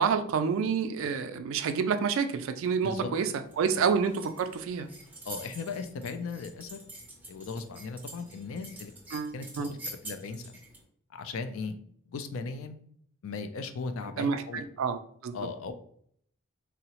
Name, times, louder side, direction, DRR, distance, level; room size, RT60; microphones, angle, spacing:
voice 1, 0.0-4.9 9.1-9.7 14.2-15.0 15.2-15.3, right 6 dB, 65° right, 9 dB, 0.3 m, -28 dB
sound 1, 3.5-10.8, right 1 dB, 10° right, 0.5 m, -47 dB
voice 2, 5.3-6.8 7.3-8.9 9.3-10.4 11.1-11.8 12.1-12.8 13.2-14.6 15.3-15.7, left 4 dB, 65° left, 8 dB, 0.3 m, -37 dB
3.7 x 2.0 x 2.8 m, 0.65 s
head